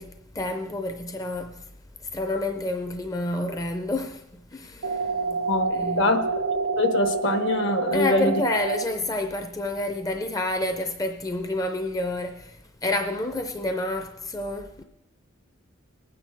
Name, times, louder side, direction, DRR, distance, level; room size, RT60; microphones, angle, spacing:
voice 1, 0.0-1.6 2.1-4.2 4.5-6.2 7.9-14.8, left 2 dB, 15° left, 0.5 m, -29 dB
sound 1, 4.8-8.8, right 4 dB, 80° right, 1.2 m, -27 dB
voice 2, 5.5-6.2 6.8-8.3, left 2 dB, 60° left, 1.0 m, -24 dB
19.5 x 9.2 x 3.4 m
head